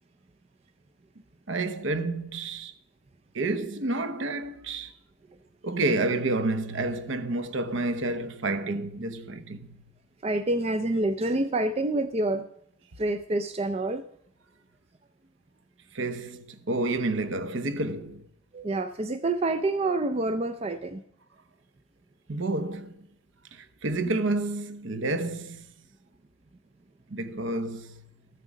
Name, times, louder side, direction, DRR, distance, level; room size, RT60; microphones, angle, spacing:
voice 1, 1.5-2.7 3.3-4.9 5.6-9.7 15.9-18.2 22.3-22.9 23.5-25.7 27.1-28.0, right 2 dB, 60° right, 0.8 m, -29 dB
voice 2, 10.2-12.5 13.0-14.0 18.5-21.0, right 2 dB, 30° right, 0.4 m, -27 dB
13.0 x 7.5 x 6.3 m
head